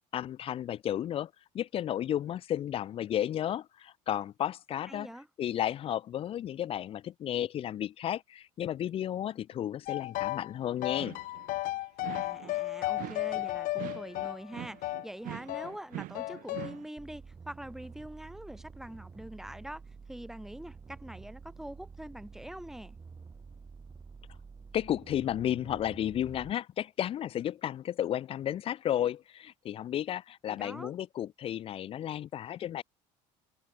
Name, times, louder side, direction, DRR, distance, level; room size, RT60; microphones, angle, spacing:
voice 1, 0.1-5.1 5.4-11.2 24.7-32.8, left 11 dB, 40° left, 0.5 m, -33 dB
voice 2, 4.9-5.3 12.1-19.8 20.1-23.0 30.5-30.9, right 1 dB, 5° right, 4.4 m, -44 dB
sound 1, 9.9-10.5 10.8-15.1 15.5-15.7 16.1-16.7, left 18 dB, 65° left, 1.4 m, -34 dB
sound 2, 10.8-11.5 12.0-12.6 13.0-16.9, right 17 dB, 65° right, 2.3 m, -44 dB
sound 3, 17.0-26.5, right 5 dB, 20° right, 1.5 m, -49 dB
cardioid pair, 125°, 15 cm